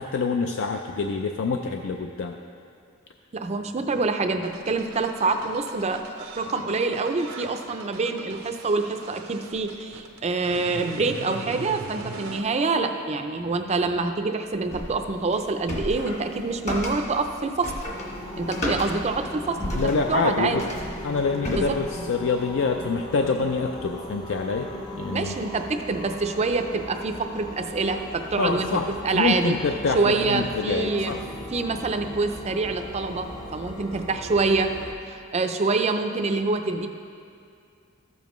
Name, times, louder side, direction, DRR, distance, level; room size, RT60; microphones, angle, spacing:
voice 1, 0.0-2.3 19.7-20.6 21.0-24.7 25.0-25.4 28.4-28.9 29.1-31.2, left 4 dB, 65° left, 3 dB, 0.4 m, -26 dB
voice 2, 3.3-17.7 18.4-19.8 20.1-20.6 21.5-21.8 25.1-28.8 29.0-29.5 29.9-31.1 31.5-34.7 35.1-36.9, right 3 dB, 30° right, 6 dB, 0.5 m, -26 dB
sound 1, 4.4-12.4, right 3 dB, 85° right, 0.8 m, -41 dB
sound 2, 14.7-22.1, equal, 35° left, 1.2 m, -33 dB
sound 3, 17.9-34.9, left 1 dB, 20° left, 0.6 m, -38 dB
13.5 x 7.1 x 3.1 m, 2.4 s
head